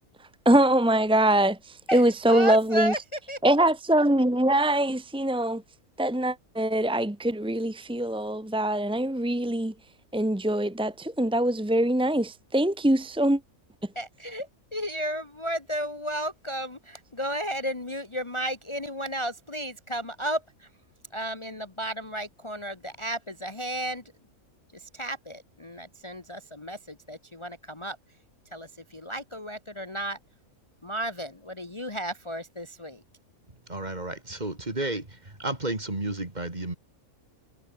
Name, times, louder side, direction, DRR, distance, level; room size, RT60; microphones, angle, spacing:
voice 1, 0.5-2.9 3.4-5.6 6.0-9.7 10.1-13.4, right 1 dB, 5° right, 0.5 m, -23 dB
voice 2, 1.9-3.5 13.9-20.7 21.1-24.0 24.7-28.0 28.5-30.2 30.8-33.0, right 1 dB, 20° left, 1.2 m, -33 dB
voice 3, 33.7-36.7, right 2 dB, 30° right, 3.3 m, -32 dB
omnidirectional pair, 1.5 m